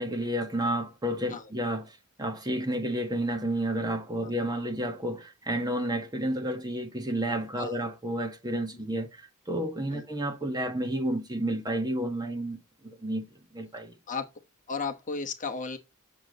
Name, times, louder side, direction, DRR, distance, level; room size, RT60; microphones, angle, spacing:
voice 1, 0.0-12.6 12.8-13.3 13.5-13.9, right 1 dB, 20° right, 1.4 m, -31 dB
voice 2, 14.7-15.8, left 4 dB, 35° left, 1.0 m, -34 dB
7.3 x 6.8 x 4.0 m
head